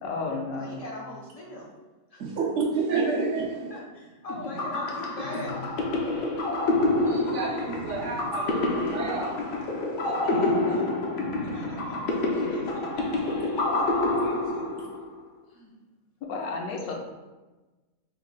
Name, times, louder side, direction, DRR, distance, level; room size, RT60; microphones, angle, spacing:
voice 1, 0.0-0.8 16.3-16.9, left 3 dB, 80° left, 1 dB, 1.1 m, -32 dB
voice 2, 0.5-1.7 2.1-2.3 3.7-5.6 10.0-10.9 11.4-14.8 15.5-15.7, left 1 dB, 30° left, -5 dB, 0.8 m, -42 dB
voice 3, 2.2-3.7 7.0-9.6, right 4 dB, 65° right, 0 dB, 0.8 m, -29 dB
sound 1, 4.3-15.1, left 2 dB, 60° left, 1.0 m, -27 dB
5.5 x 3.2 x 2.2 m, 1.2 s
omnidirectional pair, 1.5 m